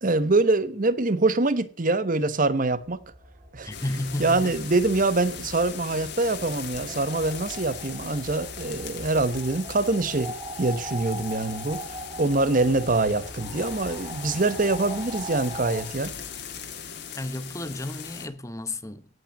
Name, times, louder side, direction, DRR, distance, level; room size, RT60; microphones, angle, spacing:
voice 1, 0.0-3.0 3.5-3.7 4.2-16.1, right 2 dB, 40° right, 0.9 m, -24 dB
sound 1, 2.9-15.9, right 1 dB, 25° right, 4.1 m, -41 dB
voice 2, 3.6-4.6 17.2-19.1, left 1 dB, 15° left, 0.8 m, -32 dB
sound 2, 3.7-18.3, left 7 dB, 55° left, 2.0 m, -39 dB
sound 3, 4.5-9.9, right 1 dB, 60° right, 2.9 m, -51 dB
17.0 x 6.0 x 7.2 m
head